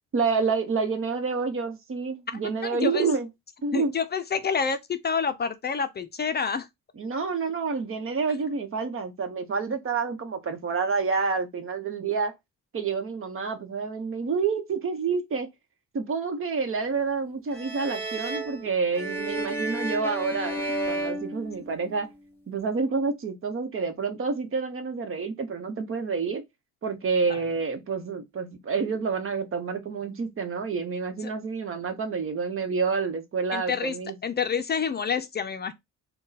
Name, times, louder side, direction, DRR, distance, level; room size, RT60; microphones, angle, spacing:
voice 1, 0.1-3.3 3.6-3.9 7.0-12.3 12.7-15.5 15.9-22.1 22.5-26.4 26.8-34.2, right 5 dB, 45° right, 1.0 m, -28 dB
voice 2, 2.7-3.1 3.7-6.7 27.3-27.4 31.2-31.3 33.5-34.0 34.2-35.7, left 6 dB, 35° left, 0.5 m, -28 dB
sound 1, 17.5-22.1, right 1 dB, 5° left, 2.0 m, -32 dB
3.6 x 2.3 x 4.0 m
cardioid pair, 90°, 30 cm